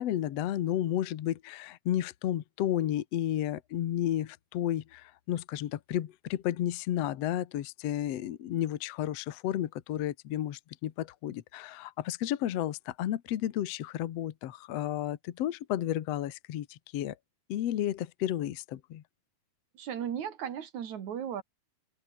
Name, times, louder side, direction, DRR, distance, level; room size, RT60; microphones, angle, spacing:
voice 1, 0.0-17.1 17.5-19.0, left 12 dB, 70° left, 1.5 m, -32 dB
voice 2, 19.7-21.4, right 9 dB, 55° right, 2.9 m, -36 dB
open air
omnidirectional pair, 4.7 m